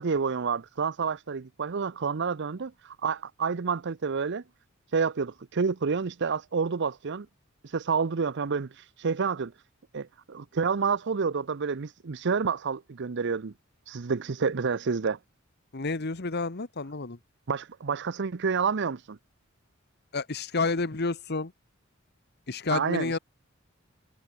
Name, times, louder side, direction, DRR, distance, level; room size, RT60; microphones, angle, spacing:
voice 1, 0.0-4.4 4.9-7.3 7.6-9.5 9.9-13.5 13.9-15.2 17.5-19.2 22.7-23.2, right 5 dB, 60° right, 0.6 m, -29 dB
voice 2, 15.7-17.2 20.1-21.5 22.5-23.2, left 3 dB, 55° left, 1.3 m, -30 dB
head